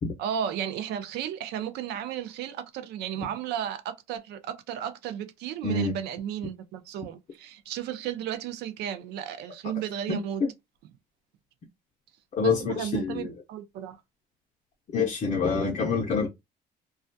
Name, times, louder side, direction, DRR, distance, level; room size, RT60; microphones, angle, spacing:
voice 1, 0.2-10.4 12.4-14.0, right 9 dB, 80° right, 0.5 m, -34 dB
voice 2, 5.6-5.9 10.1-10.5 12.4-13.3 14.9-16.3, left 4 dB, 40° left, 0.6 m, -26 dB
2.3 x 2.2 x 2.5 m
cardioid pair, 110°, 17 cm